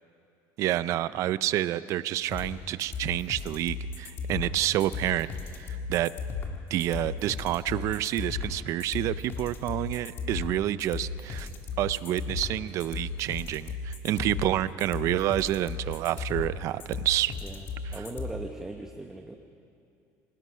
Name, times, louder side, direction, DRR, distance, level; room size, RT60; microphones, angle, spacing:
voice 1, 0.6-5.3 5.6-6.1 6.7-11.5 11.8-17.3 17.8-18.0, right 13 dB, 50° right, 16 dB, 0.5 m, -28 dB
sound 1, 2.3-18.3, left 5 dB, 35° left, 1.9 m, -35 dB
voice 2, 17.9-19.4, right 2 dB, 5° right, 4 dB, 0.9 m, -38 dB
26.0 x 19.0 x 5.7 m, 2.6 s
cardioid pair, 160°, 7 cm